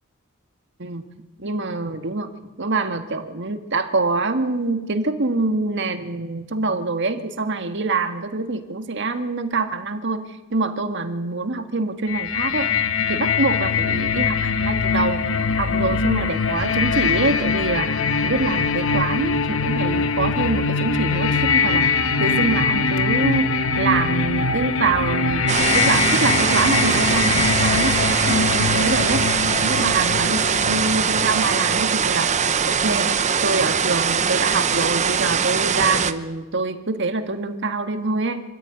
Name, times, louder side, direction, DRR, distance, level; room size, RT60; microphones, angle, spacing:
voice 1, 1.4-2.3 2.6-12.7 13.1-15.3 15.6-17.9 18.2-21.9 22.2-29.3 29.6-32.3 32.7-33.1 33.4-38.4, right 3 dB, 55° right, 7 dB, 1.8 m, -25 dB
sound 1, 12.1-31.8, left 4 dB, 65° left, 1.1 m, -22 dB
sound 2, 25.5-36.1, right 6 dB, 35° right, 0.8 m, -21 dB
25.5 x 13.5 x 9.2 m, 1.1 s
head